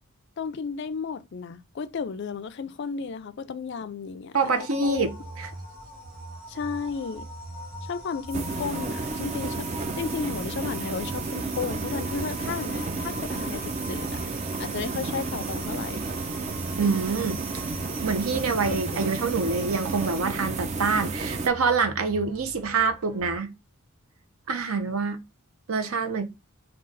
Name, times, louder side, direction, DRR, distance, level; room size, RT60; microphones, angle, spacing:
voice 1, 0.4-5.1 6.5-7.2 7.8-9.7 9.9-16.1 18.7-19.2, left 5 dB, 50° left, 0.3 m, -34 dB
sound 1, 4.3-20.2, left 2 dB, 5° right, 1.1 m, -45 dB
voice 2, 4.3-5.5 16.8-17.6 18.0-23.5 24.5-25.2 25.7-26.2, right 4 dB, 75° right, 0.7 m, -26 dB
sound 2, 4.8-23.4, right 1 dB, 55° right, 1.4 m, -43 dB
sound 3, 8.3-21.5, right 3 dB, 30° right, 0.4 m, -32 dB
3.8 x 2.4 x 3.9 m
head